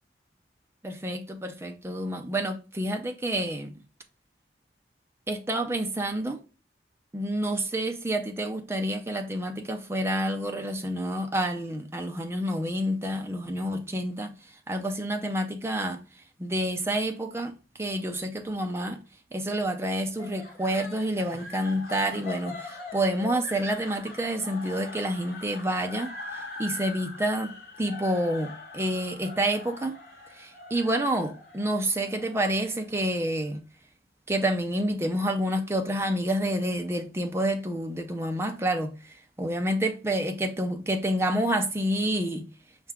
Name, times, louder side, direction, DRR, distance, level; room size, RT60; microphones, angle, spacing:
voice 1, 0.8-3.7 5.3-6.4 7.1-14.3 14.7-16.0 16.4-17.5 17.8-19.0 19.3-26.1 26.6-27.5 27.8-29.9 30.3-33.6 34.3-39.0 39.4-42.4, right 1 dB, 15° right, 0.5 m, -28 dB
sound 1, 20.2-33.3, left 3 dB, 50° left, 1.4 m, -42 dB
5.4 x 2.4 x 3.4 m
head